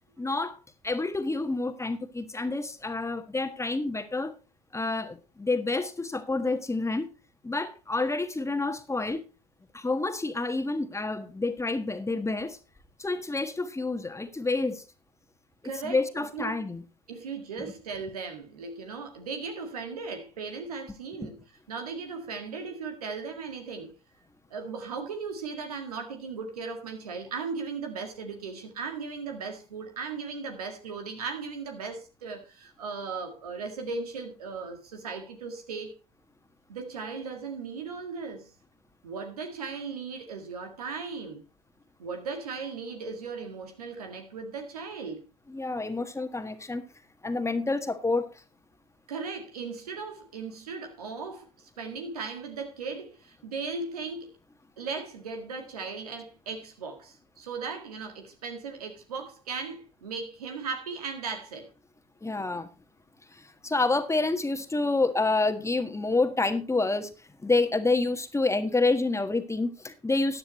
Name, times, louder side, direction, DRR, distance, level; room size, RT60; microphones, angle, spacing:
voice 1, 0.2-0.6 0.8-4.3 4.7-7.1 7.4-9.2 9.7-12.6 13.0-14.8 15.8-16.8 45.5-46.8 47.2-48.3 62.2-62.7 63.4-67.1 67.4-70.4, left 3 dB, 15° left, 1.6 m, -28 dB
voice 2, 15.6-16.0 16.3-16.6 17.1-24.0 24.5-35.9 36.7-38.5 39.0-41.4 42.0-45.3 49.1-54.3 54.8-61.7, right 4 dB, 90° right, 2.0 m, -37 dB
14.5 x 10.0 x 3.1 m
hypercardioid pair, 65°, 19 cm